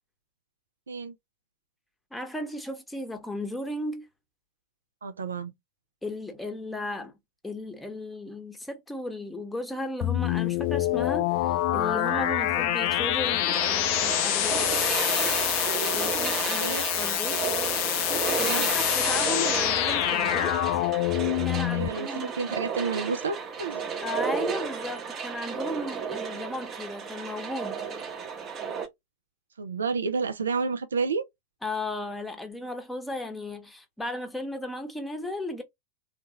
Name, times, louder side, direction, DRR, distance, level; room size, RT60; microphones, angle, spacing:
voice 1, 2.1-4.1 6.0-7.2 7.4-14.9 15.9-17.4 18.1-20.6 21.4-22.3 24.0-27.8 31.6-35.6, left 1 dB, 5° left, 0.9 m, -35 dB
voice 2, 5.0-5.5 16.6-16.8 18.4-18.7 21.7-23.8 29.6-31.2, right 5 dB, 70° right, 0.4 m, -30 dB
sound 1, 10.0-21.9, left 13 dB, 45° left, 0.4 m, -26 dB
sound 2, 13.5-28.9, right 6 dB, 30° right, 0.9 m, -32 dB
3.2 x 2.3 x 2.9 m
figure-of-eight pair, 90°, 0 cm